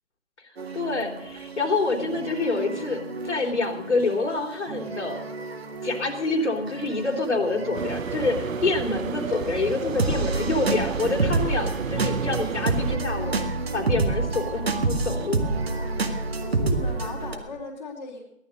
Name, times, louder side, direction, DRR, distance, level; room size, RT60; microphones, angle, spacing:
sound 1, 0.6-17.3, right 3 dB, 50° right, 2.1 m, -29 dB
voice 1, 0.7-5.2 5.8-13.4 13.7-15.4, left 3 dB, 60° left, 2 dB, 3.5 m, -27 dB
sound 2, 7.7-13.0, right 6 dB, 75° right, 0.8 m, -32 dB
voice 2, 9.9-10.3 16.4-18.2, left 3 dB, 30° left, -1 dB, 3.4 m, -37 dB
18.0 x 12.5 x 6.5 m, 0.83 s
figure-of-eight pair, 160°, 40 cm